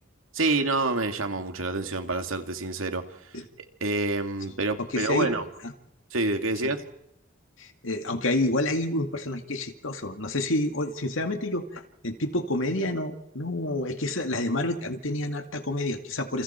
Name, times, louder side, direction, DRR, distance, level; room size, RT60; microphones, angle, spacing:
voice 1, 0.3-3.0 3.8-5.4 6.1-6.8, right 3 dB, 90° right, 6 dB, 2.6 m, -27 dB
voice 2, 4.9-5.3 6.6-6.7 7.6-16.4, left 1 dB, 75° left, 6 dB, 2.2 m, -29 dB
29.5 x 29.5 x 4.6 m, 0.74 s
head